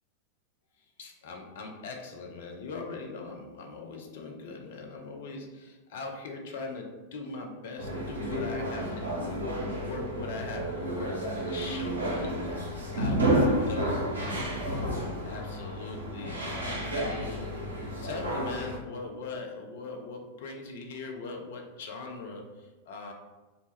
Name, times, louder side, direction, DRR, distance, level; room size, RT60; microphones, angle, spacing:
voice 1, 1.0-12.7 12.9-14.1 14.6-17.5 18.0-23.1, left 3 dB, 55° left, 3 dB, 0.4 m, -41 dB
sound 1, 7.8-18.8, right 1 dB, 75° right, 0.6 m, -31 dB
2.1 x 2.0 x 3.2 m, 1.2 s
figure-of-eight pair, 90°, 0 cm